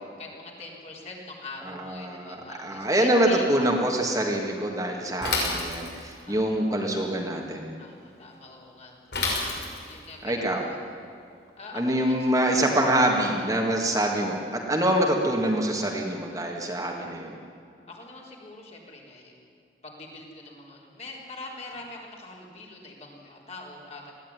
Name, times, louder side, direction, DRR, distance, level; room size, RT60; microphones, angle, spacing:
voice 1, 0.2-3.5 6.3-7.0 7.8-9.4 9.8-10.8 11.6-12.3 17.9-19.5 19.8-24.1, left 3 dB, 40° left, -2 dB, 4.0 m, -43 dB
voice 2, 1.8-7.7 10.2-10.6 11.7-17.3, right 1 dB, 20° right, 0 dB, 1.9 m, -25 dB
Bicycle / Mechanisms, 5.2-6.2 9.1-10.0, left 3 dB, 70° left, 5.7 m, -28 dB
20.5 x 15.0 x 9.6 m, 2.4 s
head